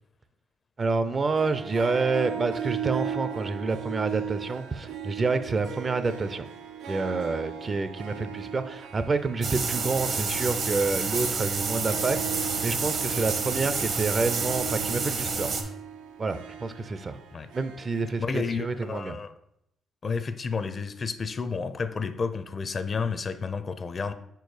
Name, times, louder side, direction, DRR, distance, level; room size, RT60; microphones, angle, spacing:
voice 1, 0.8-6.5 6.9-15.5 16.2-17.2 17.5-19.2, right 3 dB, 35° right, 12 dB, 0.4 m, -28 dB
Harp, 1.3-18.9, right 8 dB, 85° right, 0.5 m, -38 dB
sound 1, 9.4-15.6, right 4 dB, 60° right, 0.9 m, -29 dB
voice 2, 18.2-19.3 20.0-24.1, left 5 dB, 40° left, 12 dB, 0.5 m, -31 dB
4.8 x 4.5 x 4.7 m, 0.79 s
cardioid pair, 90°, 0 cm